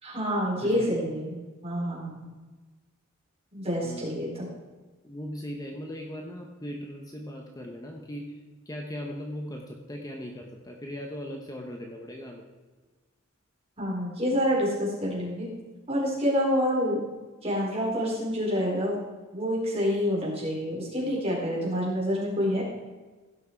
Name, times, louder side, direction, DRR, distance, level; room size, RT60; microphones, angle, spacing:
voice 1, 0.0-2.3 3.5-4.5 13.8-15.5 15.9-17.0 17.4-19.0 19.3-22.6, equal, 30° right, -5 dB, 4.1 m, -27 dB
voice 2, 0.6-1.0 3.8-4.2 5.0-8.4 8.7-12.5, equal, 20° left, 1 dB, 1.0 m, -38 dB
16.0 x 6.3 x 4.6 m, 1.3 s
head